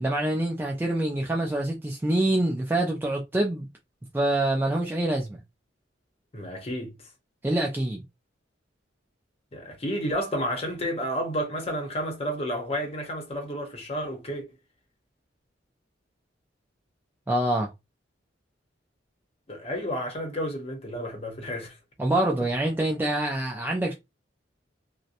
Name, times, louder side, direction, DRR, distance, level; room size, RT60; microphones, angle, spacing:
voice 1, 0.0-3.7 4.1-5.4 7.4-8.0 17.3-17.7 22.0-23.9, right 1 dB, 10° right, 0.3 m, -25 dB
voice 2, 6.3-7.0 9.5-14.4 19.5-21.8, equal, 35° left, 0.8 m, -31 dB
2.7 x 2.0 x 2.5 m
head